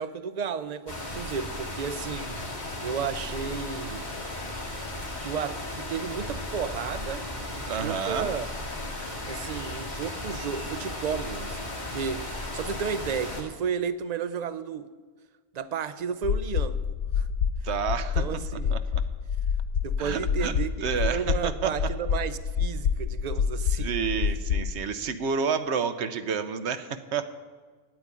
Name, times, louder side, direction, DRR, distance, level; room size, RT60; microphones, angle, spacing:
voice 1, 0.0-2.4 2.8-4.1 5.2-8.5 9.3-14.9 15.5-16.8 17.2-17.3 18.1-18.8 19.8-24.0, right 6 dB, 45° right, 14 dB, 0.6 m, -33 dB
sound 1, 0.9-13.4, left 1 dB, 40° left, 2.1 m, -35 dB
voice 2, 7.7-8.3 17.6-18.2 18.7-19.0 20.0-20.5 20.8-21.7 23.8-27.3, right 6 dB, 85° right, 10 dB, 1.1 m, -29 dB
sound 2, 16.2-24.7, left 7 dB, 75° left, 0.9 m, -28 dB
9.1 x 8.8 x 9.6 m, 1.4 s
omnidirectional pair, 1.1 m